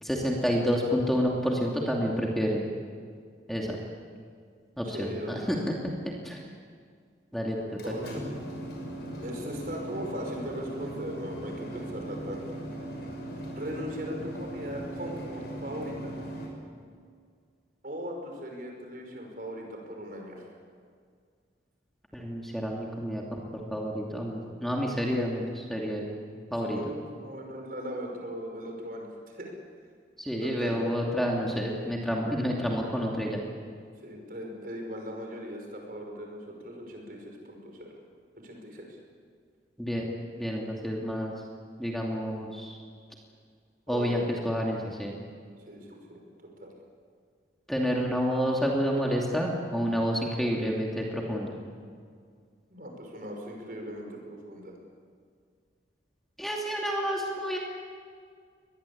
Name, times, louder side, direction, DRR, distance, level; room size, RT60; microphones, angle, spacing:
voice 1, 0.0-2.6 3.5-3.8 4.8-5.7 6.2-6.4 7.3-7.6 22.1-23.4 23.7-26.1 26.5-26.8 30.2-33.4 39.8-40.1 40.4-41.3 41.8-42.8 43.9-45.1 47.7-51.5 56.4-57.6, equal, ahead, -2 dB, 2.6 m, -29 dB
voice 2, 4.8-5.6 7.8-8.3 9.2-12.4 13.5-16.1 17.8-20.5 26.6-29.1 29.3-29.5 30.4-30.8 34.0-37.9 38.4-39.0 43.9-44.2 45.7-46.2 46.6-46.7 52.7-54.7, equal, 50° right, 2 dB, 5.7 m, -39 dB
sound 1, 7.6-16.5, right 1 dB, 65° left, 6.7 m, -39 dB
24.0 x 20.5 x 8.7 m, 2.1 s
head